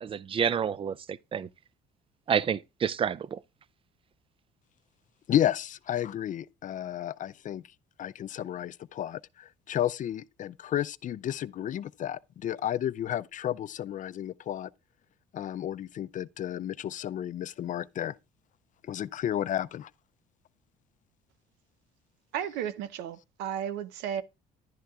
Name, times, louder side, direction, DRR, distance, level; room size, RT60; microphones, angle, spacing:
voice 1, 0.0-1.5 2.3-3.4, right 7 dB, 30° right, 0.4 m, -29 dB
voice 2, 5.3-7.6 8.0-14.7 15.3-18.2 18.9-19.9, left 11 dB, 50° left, 0.4 m, -32 dB
voice 3, 22.3-24.2, right 9 dB, 85° right, 0.7 m, -34 dB
11.0 x 10.0 x 2.4 m
supercardioid pair, 80°, 17 cm